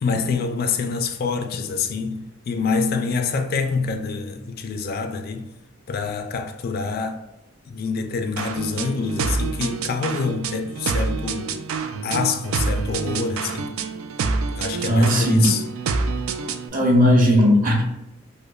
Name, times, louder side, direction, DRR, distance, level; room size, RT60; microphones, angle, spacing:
voice 1, 0.0-5.5 5.9-7.2 7.7-11.5 12.0-13.7 14.6-15.7, left 5 dB, 50° left, 0.3 m, -26 dB
sound 1, 8.4-16.7, right 4 dB, 90° right, 0.3 m, -27 dB
voice 2, 14.9-15.5 16.7-17.8, equal, 45° right, 0.7 m, -16 dB
5.0 x 2.1 x 2.3 m
head